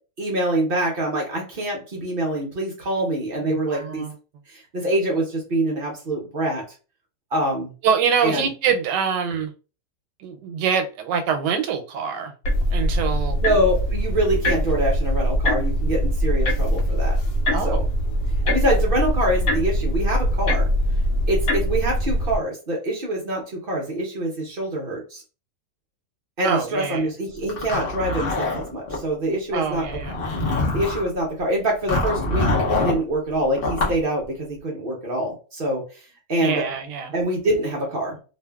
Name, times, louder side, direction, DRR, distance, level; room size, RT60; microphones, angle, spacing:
voice 1, 0.2-4.1 4.5-6.6 7.3-7.7 8.2-8.5 13.4-17.2 17.6-17.9 18.4-20.7 21.3-25.2 26.4-29.9 30.7-36.6 37.1-38.3, right 1 dB, 60° right, -1 dB, 0.5 m, -25 dB
voice 2, 3.4-4.1 7.8-9.5 10.2-12.3 12.7-13.4 17.5-17.8 26.4-27.1 29.5-30.2 36.4-37.1, right 6 dB, 90° right, 6 dB, 1.2 m, -25 dB
sound 1, 12.4-22.4, equal, 75° left, 1.1 m, -22 dB
Zipper (clothing), 27.5-29.0 29.8-31.1 31.9-33.0 33.6-34.0, left 2 dB, 55° left, 0.6 m, -24 dB
2.6 x 2.5 x 2.2 m, 0.35 s
omnidirectional pair, 1.8 m